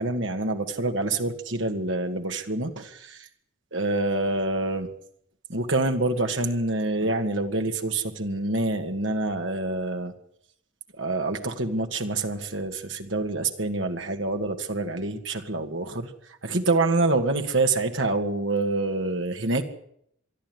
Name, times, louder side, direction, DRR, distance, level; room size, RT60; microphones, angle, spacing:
voice 1, 0.0-3.3 3.7-4.9 5.5-10.1 11.0-16.1 16.4-19.7, right 2 dB, 70° right, 5 dB, 2.3 m, -26 dB
23.5 x 12.5 x 9.6 m, 0.71 s
head